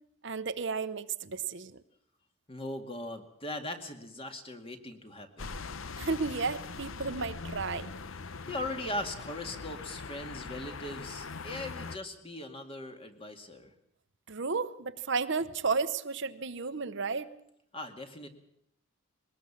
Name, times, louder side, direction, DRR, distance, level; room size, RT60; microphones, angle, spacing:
voice 1, 0.2-1.7 6.0-7.9 14.3-17.3, right 4 dB, 60° right, 11 dB, 0.9 m, -33 dB
voice 2, 2.5-5.6 8.5-13.7 17.7-18.3, left 1 dB, 25° left, 5 dB, 2.2 m, -39 dB
sound 1, 5.4-12.0, left 4 dB, 75° left, 0.8 m, -42 dB
21.5 x 19.5 x 7.3 m, 0.75 s
head